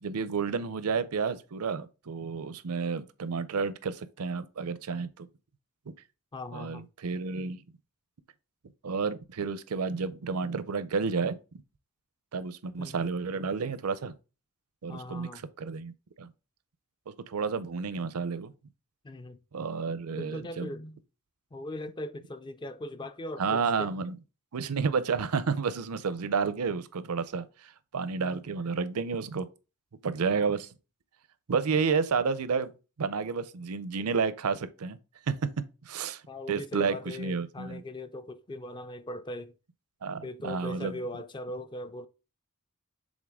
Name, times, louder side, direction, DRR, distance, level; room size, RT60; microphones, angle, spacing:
voice 1, 0.0-5.3 5.9-6.0 6.5-7.6 8.8-11.4 12.3-14.1 14.8-15.9 16.2-16.3 17.1-18.5 19.5-20.7 23.4-24.2 24.5-29.5 30.0-30.7 31.5-32.7 33.0-35.0 35.3-36.2 36.5-37.8 40.0-41.0, right 5 dB, 85° right, 0.6 m, -31 dB
voice 2, 6.3-6.9 12.8-12.9 14.9-15.4 19.0-19.4 20.2-21.0 21.5-23.9 36.3-39.5 40.2-42.1, left 1 dB, 20° left, 0.4 m, -39 dB
7.3 x 3.7 x 3.6 m
head